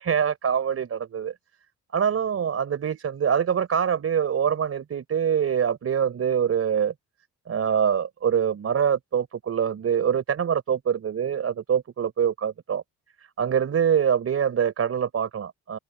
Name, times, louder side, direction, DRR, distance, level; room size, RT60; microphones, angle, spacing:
voice 1, 0.0-1.3 1.9-6.9 7.5-12.8 13.4-15.8, right 8 dB, 50° right, 4.0 m, -24 dB
open air
cardioid pair, 90°, 30 cm